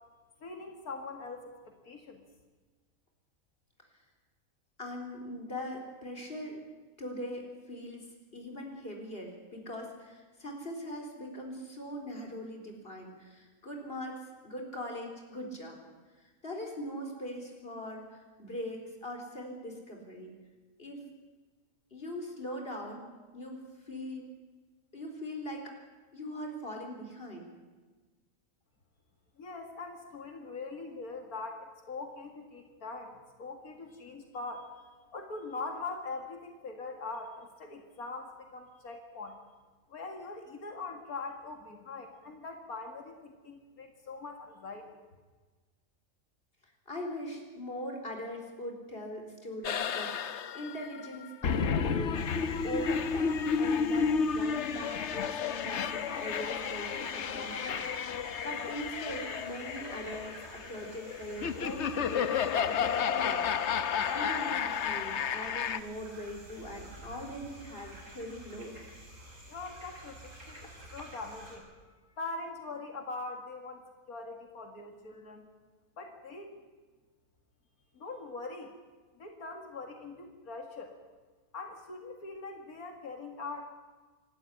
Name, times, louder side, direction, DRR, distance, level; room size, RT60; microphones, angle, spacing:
voice 1, 0.4-2.2 29.4-39.4 39.9-45.0 69.5-75.5 76.0-76.5 77.9-78.7 79.2-81.0 81.5-83.7, left 3 dB, 85° left, 4 dB, 2.5 m, -42 dB
voice 2, 4.8-6.6 7.0-8.1 8.3-15.8 16.2-20.3 20.8-21.1 21.9-24.3 24.9-25.7 26.1-27.5 46.6-68.8, equal, 40° left, 2 dB, 4.3 m, -41 dB
sound 1, 49.6-65.8, left 6 dB, 55° left, 1.1 m, -32 dB
sound 2, 52.1-71.6, right 1 dB, 60° right, 6.5 m, -50 dB
26.5 x 12.5 x 9.9 m, 1.3 s
omnidirectional pair, 1.5 m